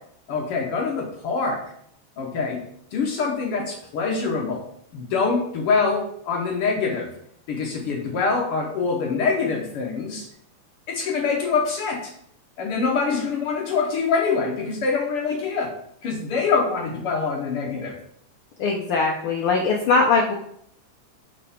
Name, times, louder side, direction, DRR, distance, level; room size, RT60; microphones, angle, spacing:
voice 1, 0.3-1.6 2.2-2.6 2.9-4.6 4.9-7.1 7.5-10.3 10.9-12.1 12.6-15.7 16.0-18.0, left 4 dB, 65° left, 1 dB, 1.5 m, -24 dB
voice 2, 18.6-20.3, left 4 dB, 85° left, 1 dB, 1.2 m, -21 dB
6.4 x 5.3 x 4.2 m, 0.69 s
omnidirectional pair, 3.4 m